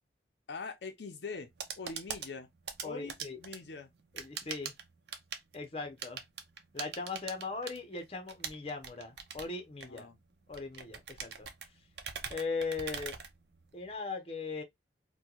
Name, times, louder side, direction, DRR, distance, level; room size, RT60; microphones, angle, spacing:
voice 1, 0.5-2.5 2.8-3.9 9.8-10.2, left 4 dB, 70° left, 0.6 m, -43 dB
sound 1, 1.3-14.0, right 6 dB, 65° right, 0.6 m, -44 dB
voice 2, 2.8-3.4 4.1-4.7 5.5-6.2 6.7-10.1 10.5-11.5 12.3-13.2 13.7-14.6, left 4 dB, 35° left, 0.8 m, -39 dB
4.4 x 2.2 x 2.3 m
head